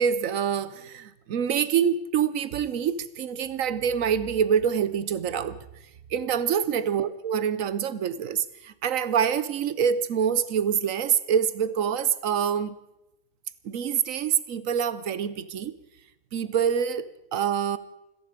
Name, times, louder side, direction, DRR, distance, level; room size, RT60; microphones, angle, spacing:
voice 1, 0.0-5.6 6.1-12.7 13.6-15.7 16.3-17.8, right 8 dB, 65° right, 1.1 m, -26 dB
27.5 x 10.5 x 5.0 m
omnidirectional pair, 1.7 m